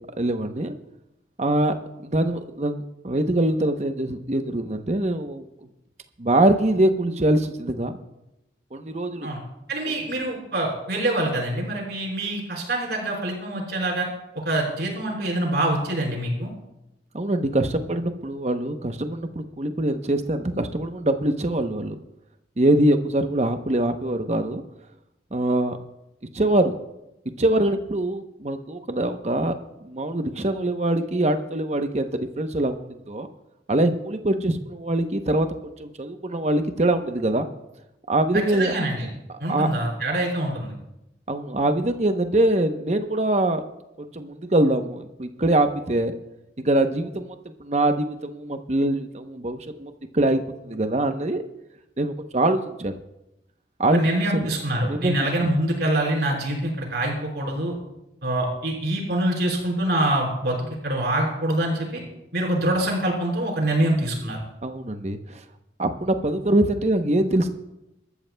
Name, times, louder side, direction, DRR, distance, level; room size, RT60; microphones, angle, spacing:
voice 1, 0.2-0.7 1.4-5.4 6.2-7.9 8.7-9.3 9.9-10.0 17.1-22.0 22.6-24.6 25.3-25.8 26.3-26.8 27.4-29.5 29.8-33.3 33.7-35.5 35.8-37.5 38.1-38.7 39.5-39.7 41.3-43.6 44.0-46.1 46.6-51.4 52.0-52.9 53.8-54.0 54.4-54.5 54.9-55.5 64.6-65.4 65.8-67.5, right 1 dB, 40° right, 7 dB, 0.8 m, -23 dB
voice 2, 9.7-14.1 14.4-16.5 38.3-39.1 39.4-40.7 53.9-57.7 58.2-62.0 62.3-64.4, right 1 dB, 65° right, -2 dB, 4.5 m, -25 dB
24.0 x 13.0 x 2.2 m, 0.89 s
head